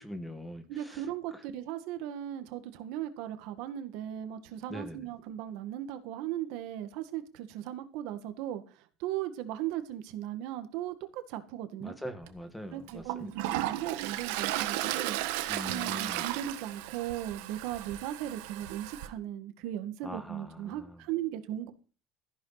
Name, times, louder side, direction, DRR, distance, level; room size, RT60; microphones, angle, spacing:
voice 1, 0.0-1.0 4.7-5.0 11.8-13.3 15.5-16.2 20.0-20.9, equal, 5° left, 8 dB, 1.6 m, -42 dB
voice 2, 0.7-8.6 9.0-12.0 12.7-15.2 15.6-21.7, right 12 dB, 70° right, 8 dB, 1.9 m, -37 dB
Toilet flush, 12.2-12.3 12.9-19.1, right 14 dB, 90° right, 1.5 m, -34 dB
14.5 x 11.0 x 4.2 m, 0.36 s
cardioid pair, 150°, 0 cm